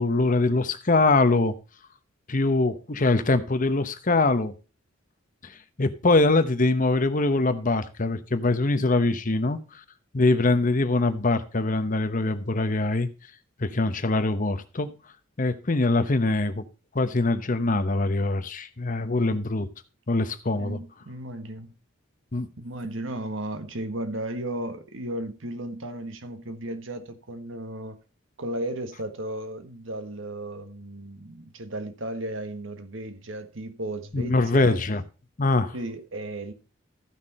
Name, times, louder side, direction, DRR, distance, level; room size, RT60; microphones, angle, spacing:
voice 1, 0.0-1.5 2.3-4.5 5.4-9.6 10.1-13.1 13.6-14.9 15.4-16.6 16.9-19.7 20.1-20.8 22.3-22.5 34.1-35.0 35.4-35.7, left 2 dB, 40° left, 0.9 m, -23 dB
voice 2, 20.6-21.7 22.6-28.0 28.4-34.8 35.7-36.5, right 1 dB, 70° right, 1.5 m, -35 dB
14.0 x 5.9 x 4.2 m
head